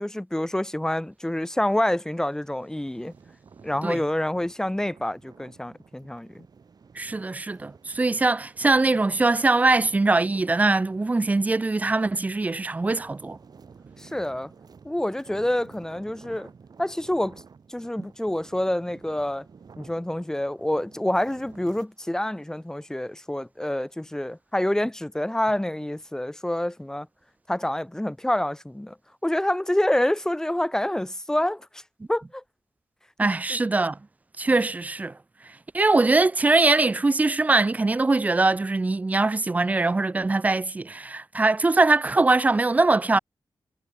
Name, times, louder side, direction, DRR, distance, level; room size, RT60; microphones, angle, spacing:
voice 1, 0.0-3.1 3.6-6.4 14.0-14.5 14.8-16.5 16.8-17.4 17.7-19.4 19.8-27.1 27.5-28.9 29.2-31.8 32.1-32.4 33.2-33.6, left 1 dB, 5° left, 1.7 m, -27 dB
sound 1, 2.8-21.9, right 5 dB, 50° right, 7.7 m, -52 dB
voice 2, 7.0-13.4 18.0-18.1 33.2-34.0 34.4-35.2 35.7-43.2, right 3 dB, 15° right, 0.4 m, -22 dB
wide cardioid pair, 175°, 9 cm